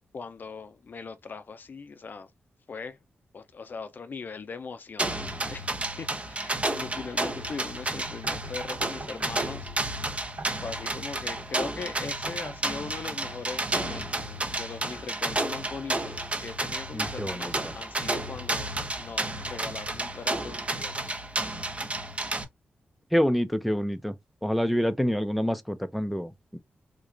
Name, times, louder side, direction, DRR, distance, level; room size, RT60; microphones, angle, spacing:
voice 1, 0.1-2.3 2.7-3.0 3.3-5.2 5.5-9.7 10.6-21.2, left 5 dB, 50° left, 0.5 m, -40 dB
sound 1, 5.0-22.4, right 2 dB, 30° right, 0.9 m, -31 dB
sound 2, 8.0-13.0, right 2 dB, 60° right, 2.3 m, -45 dB
voice 2, 16.9-17.7 23.1-24.1 24.4-26.6, equal, ahead, 0.5 m, -27 dB
3.8 x 2.4 x 3.2 m
cardioid pair, 80°, 4 cm